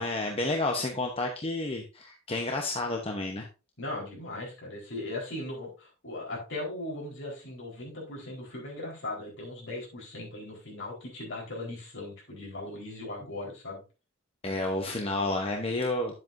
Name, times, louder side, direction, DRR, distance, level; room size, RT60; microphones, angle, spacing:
voice 1, 0.0-3.5 14.4-16.2, left 2 dB, 25° left, 2 dB, 0.9 m, -30 dB
voice 2, 3.8-13.8, left 2 dB, 60° left, -2 dB, 4.3 m, -38 dB
9.9 x 7.7 x 2.6 m, 0.30 s
head